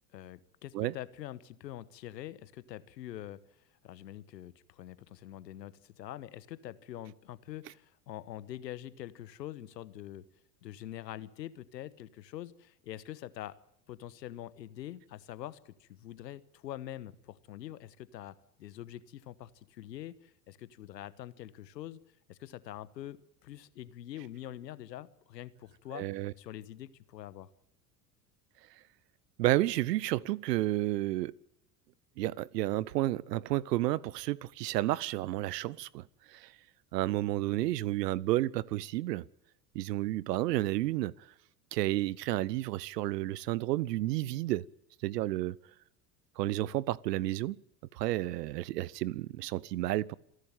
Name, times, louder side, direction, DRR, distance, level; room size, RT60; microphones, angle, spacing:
voice 1, 0.1-3.4 3.8-10.2 10.6-13.6 13.9-22.0 22.3-26.1 26.4-27.5, left 13 dB, 80° left, 1.3 m, -45 dB
voice 2, 25.9-26.3 29.4-31.3 32.2-36.5 36.9-39.2 39.7-41.1 41.7-44.6 45.0-45.6 46.4-47.6 47.9-50.2, right 16 dB, 75° right, 0.8 m, -31 dB
27.0 x 11.5 x 9.2 m
hypercardioid pair, 85°, 50 cm